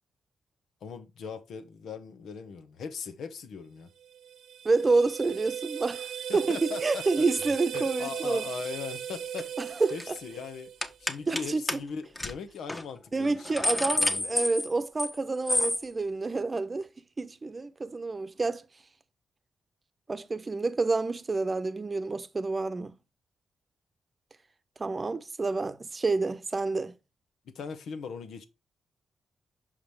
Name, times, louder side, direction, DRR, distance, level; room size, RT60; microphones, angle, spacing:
voice 1, 0.8-3.9 6.3-7.2 7.7-9.5 9.9-10.7 11.0-13.5 14.0-14.5 27.4-28.4, left 6 dB, 75° left, 1.2 m, -39 dB
sound 1, 4.0-11.1, right 9 dB, 75° right, 0.7 m, -37 dB
voice 2, 4.6-8.5 9.6-9.9 11.3-11.8 13.1-16.9 17.2-18.6 20.1-22.9 24.8-27.0, right 3 dB, 35° right, 0.9 m, -28 dB
sound 2, 9.4-9.6 9.9-10.2 10.8-11.4 11.7-11.8 12.2-12.3 12.7-12.8 13.2-15.2 15.5-15.8, left 1 dB, 20° left, 1.3 m, -28 dB
5.9 x 5.0 x 4.7 m
supercardioid pair, 50°, 0 cm